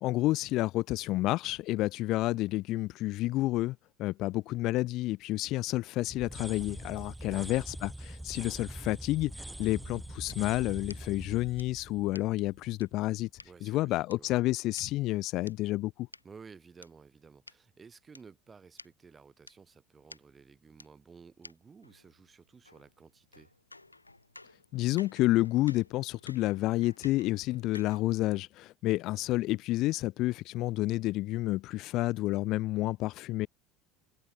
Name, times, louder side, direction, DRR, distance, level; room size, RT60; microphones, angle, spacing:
voice 1, 0.0-13.3 13.6-16.1 24.7-33.5, left 17 dB, 50° left, 0.5 m, -30 dB
sound 1, 6.1-13.0, right 1 dB, 5° right, 0.9 m, -43 dB
voice 2, 6.9-7.5 13.4-14.3 16.2-23.5, right 5 dB, 25° right, 7.6 m, -54 dB
sound 2, 10.3-13.5 14.1-16.9 17.5-17.6 18.1-18.2 18.5-18.6 18.8-18.9 19.5-19.6 20.1-20.2 20.8-20.9 21.4-21.5 21.8-28.2, left 2 dB, 85° left, 5.2 m, -54 dB
figure-of-eight pair, 70°, 0 cm